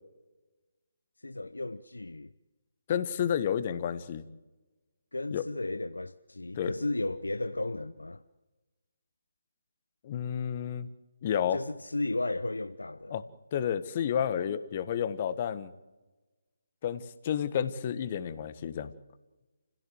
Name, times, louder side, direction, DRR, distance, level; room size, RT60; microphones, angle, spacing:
voice 1, 1.2-2.3 5.1-8.2 11.5-13.2, left 2 dB, 75° left, 0.9 m, -34 dB
voice 2, 2.9-4.2 5.3-5.4 6.5-6.7 10.0-10.9 11.2-11.6 13.1-13.2 13.5-15.7 16.8-18.9, left 9 dB, 30° left, 1.5 m, -30 dB
29.5 x 16.5 x 8.1 m
figure-of-eight pair, 145°, 0 cm